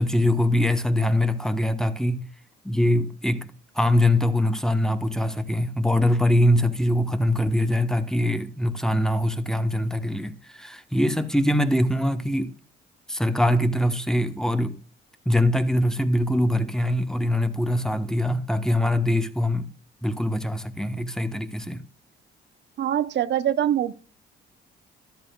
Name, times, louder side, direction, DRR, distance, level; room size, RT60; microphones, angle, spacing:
voice 1, 0.0-2.3 2.6-12.5 13.1-14.8 15.2-19.7 20.0-21.8, left 1 dB, 5° left, 1.2 m, -23 dB
voice 2, 22.8-23.9, right 11 dB, 65° right, 0.8 m, -23 dB
13.5 x 11.5 x 2.3 m
cardioid pair, 90°, 20 cm